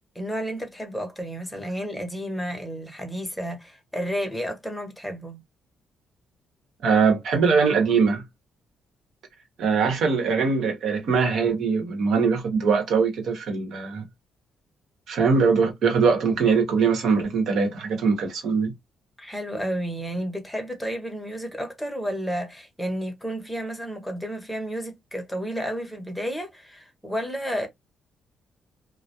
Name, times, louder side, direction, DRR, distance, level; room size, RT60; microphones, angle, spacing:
voice 1, 0.1-5.4 19.2-27.7, equal, 5° left, 0.7 m, -31 dB
voice 2, 6.8-8.2 9.6-14.0 15.1-18.7, right 5 dB, 75° right, 0.9 m, -22 dB
2.2 x 2.0 x 2.7 m
cardioid pair, 90°, 0 cm